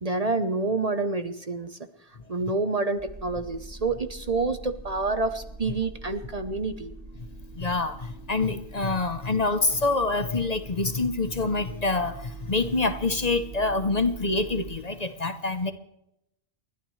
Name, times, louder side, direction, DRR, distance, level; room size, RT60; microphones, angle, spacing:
voice 1, 0.0-1.8 2.3-6.9, right 3 dB, 40° right, 9 dB, 0.9 m, -28 dB
sound 1, 3.0-14.8, right 4 dB, ahead, 6.6 m, -43 dB
voice 2, 7.6-15.7, left 3 dB, 40° left, 9 dB, 1.0 m, -26 dB
30.0 x 12.0 x 3.2 m, 0.81 s
omnidirectional pair, 1.1 m